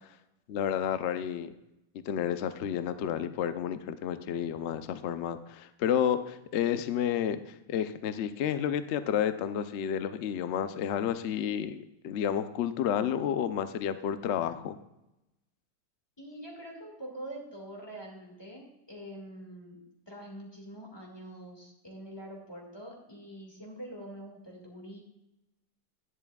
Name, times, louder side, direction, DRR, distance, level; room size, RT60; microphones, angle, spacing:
voice 1, 0.5-1.5 2.1-14.8, left 9 dB, 70° left, 11 dB, 0.6 m, -31 dB
voice 2, 16.2-25.0, right 1 dB, 15° left, -1 dB, 1.8 m, -45 dB
10.5 x 10.5 x 2.3 m, 0.91 s
omnidirectional pair, 1.8 m